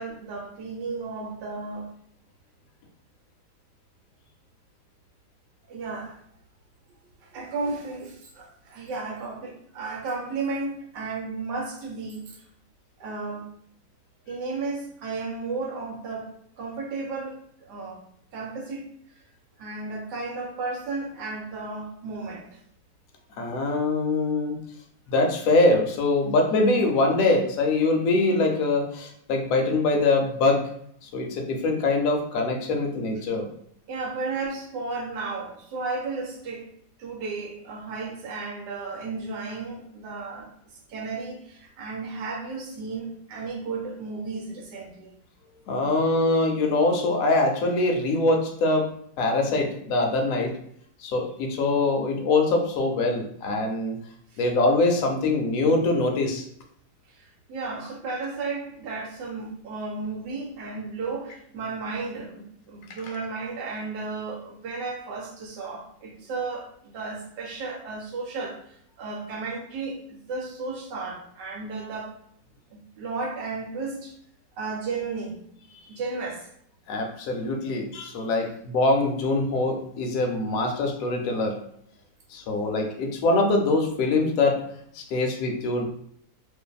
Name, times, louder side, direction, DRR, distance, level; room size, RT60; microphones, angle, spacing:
voice 1, 0.0-1.9 5.7-6.2 7.2-12.4 13.0-13.5 14.3-18.0 18.3-19.2 19.6-22.6 33.9-36.7 37.0-45.1 54.3-54.4 57.1-72.2 72.7-74.1 74.6-75.4 75.9-76.5 82.4-82.5, right 3 dB, 75° right, 0 dB, 1.3 m, -34 dB
voice 2, 23.4-24.6 25.1-30.7 31.0-33.5 45.7-48.9 49.2-50.5 51.0-54.0 54.4-56.4 76.9-81.6 82.3-84.6 84.9-85.8, left 2 dB, 70° left, 3 dB, 0.8 m, -23 dB
2.6 x 2.6 x 2.3 m, 0.67 s
omnidirectional pair, 1.8 m